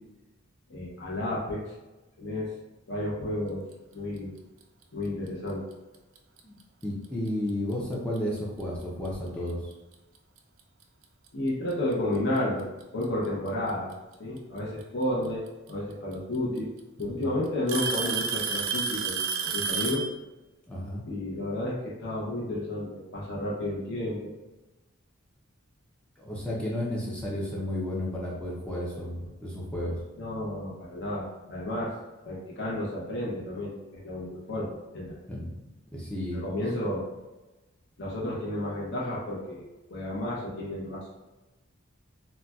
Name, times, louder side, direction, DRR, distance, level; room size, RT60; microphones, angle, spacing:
voice 1, 0.7-1.7 2.2-2.5 2.9-3.6 3.9-4.3 4.9-5.6 11.3-12.7 12.9-13.9 14.2-15.4 15.7-16.7 17.0-20.1 21.0-24.3 30.2-32.0 32.2-35.2 36.3-37.1 38.0-41.1, left 1 dB, 55° left, -5 dB, 0.7 m, -32 dB
Alarm / Tick-tock, 6.2-6.4 7.3-7.4 8.2-8.3 9.9-10.0 11.3-11.4 12.6-13.0 14.8-14.9 16.1-16.2 16.6-17.0 17.7-20.1, right 6 dB, 70° right, 0.4 m, -30 dB
voice 2, 6.8-9.7 17.0-17.4 20.7-21.0 26.2-30.0 35.3-35.5 35.9-36.4, left 1 dB, 5° left, -5 dB, 0.4 m, -32 dB
3.9 x 2.2 x 2.3 m, 1.1 s
head